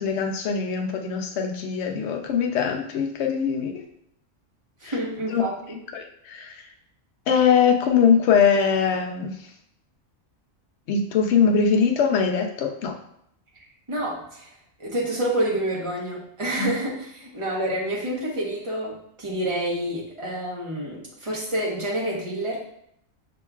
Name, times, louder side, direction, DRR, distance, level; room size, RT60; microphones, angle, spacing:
voice 1, 0.0-3.8 4.8-4.9 5.3-5.4 5.9-6.5 7.3-9.3 10.9-13.0 16.6-16.8, left 6 dB, 65° left, 3 dB, 0.9 m, -22 dB
voice 2, 4.8-5.8 13.9-14.5 14.8-22.6, right 1 dB, 25° right, -5 dB, 1.0 m, -28 dB
5.4 x 3.0 x 2.3 m, 0.71 s
omnidirectional pair, 1.4 m